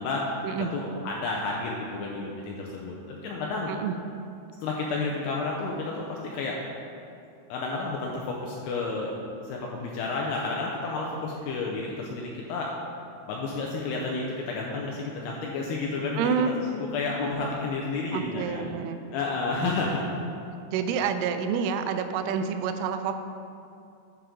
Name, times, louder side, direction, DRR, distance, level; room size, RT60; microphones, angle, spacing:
voice 1, 0.0-0.4 0.7-3.7 4.6-6.6 7.5-9.1 9.4-12.7 13.3-18.7 19.1-20.0, left 3 dB, 90° left, -2 dB, 2.3 m, -31 dB
voice 2, 16.2-16.5 18.1-19.0 19.6-20.3 20.7-23.2, right 7 dB, 85° right, 8 dB, 3.0 m, -29 dB
9.8 x 7.5 x 3.7 m, 2.5 s
omnidirectional pair, 5.6 m